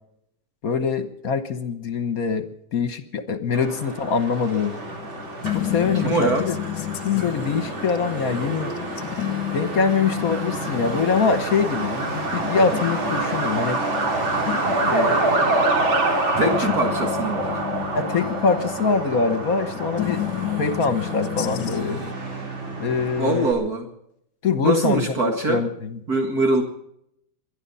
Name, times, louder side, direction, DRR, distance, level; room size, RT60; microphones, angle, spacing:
voice 1, 0.6-2.5 2.7-4.8 5.5-6.6 7.0-8.7 9.5-13.8 14.9-15.6 16.4-16.8 17.9-20.2 20.6-22.0 22.8-23.5 24.4-26.0, left 5 dB, 50° left, 10 dB, 1.5 m, -24 dB
Truck, 3.5-23.5, right 2 dB, 85° right, 4.2 m, -27 dB
sound 1, 4.6-22.1, left 13 dB, 75° left, 1.5 m, -32 dB
voice 2, 5.9-6.5 16.4-17.6 23.2-23.9 24.6-25.6 26.1-26.6, right 2 dB, 50° right, 2 dB, 2.4 m, -23 dB
24.0 x 11.0 x 5.6 m, 0.74 s
omnidirectional pair, 2.1 m